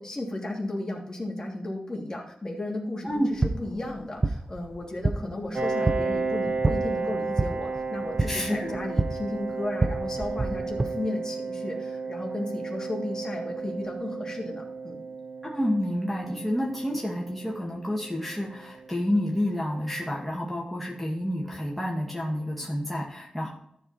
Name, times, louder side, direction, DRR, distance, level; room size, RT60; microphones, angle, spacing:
voice 1, 0.0-3.1 3.4-15.0, left 2 dB, 25° left, -1 dB, 2.9 m, -34 dB
sound 1, 3.1-10.9, right 2 dB, 30° right, 0.7 m, -29 dB
Piano, 5.5-20.9, right 4 dB, 85° right, 2.2 m, -34 dB
voice 2, 8.3-8.8 15.4-23.5, left 1 dB, 5° left, -4 dB, 2.2 m, -29 dB
13.5 x 4.9 x 4.5 m, 0.71 s
wide cardioid pair, 75°, 2 cm